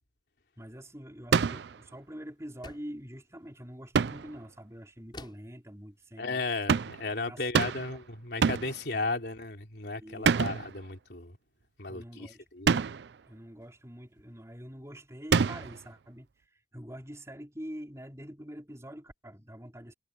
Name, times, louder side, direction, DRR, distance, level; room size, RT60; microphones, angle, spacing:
voice 1, 0.6-6.4 7.2-7.5 7.8-8.0 8.9-9.2 9.9-10.7 11.9-12.5 12.8-19.9, equal, 15° right, 4.3 m, -45 dB
sound 1, 1.3-1.8 3.9-4.4 6.7-7.1 7.5-8.0 8.4-8.8 10.2-10.7 12.7-13.1 15.3-15.8, right 6 dB, 70° right, 0.4 m, -26 dB
sound 2, 2.6-3.1 5.1-5.6 6.9-7.1 7.6-8.0, left 2 dB, 25° left, 7.2 m, -48 dB
voice 2, 6.2-11.4 11.8-12.7, left 3 dB, 65° left, 3.5 m, -35 dB
head